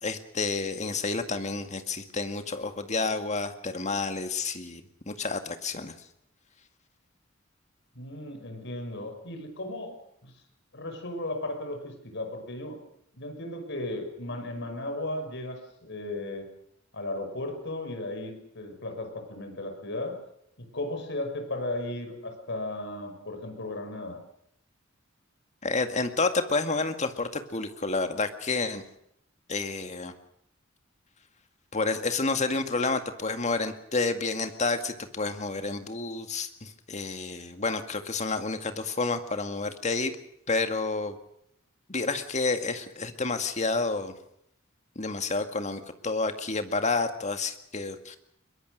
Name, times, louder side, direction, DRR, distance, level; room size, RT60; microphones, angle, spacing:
voice 1, 0.0-5.9 25.6-28.8 29.5-30.1 31.7-40.1 40.5-41.2 41.9-44.1 45.0-48.2, left 3 dB, 35° left, 8 dB, 2.1 m, -30 dB
voice 2, 8.0-10.3 10.7-12.8 13.1-16.5 16.9-20.2 20.6-24.2, left 1 dB, 60° left, 6 dB, 5.8 m, -35 dB
22.5 x 22.0 x 6.6 m, 0.73 s
head